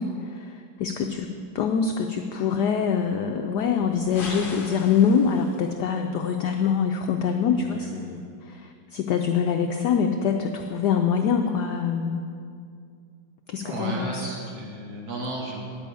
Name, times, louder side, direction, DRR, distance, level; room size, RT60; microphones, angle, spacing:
voice 1, 0.0-12.2 13.5-14.3, left 6 dB, 85° left, 4 dB, 0.9 m, -25 dB
sound 1, 4.1-5.7, left 3 dB, 70° left, 0.5 m, -39 dB
voice 2, 7.6-8.0 13.6-15.6, right 1 dB, 60° right, -3 dB, 2.5 m, -33 dB
10.5 x 5.3 x 8.4 m, 2.4 s
omnidirectional pair, 2.4 m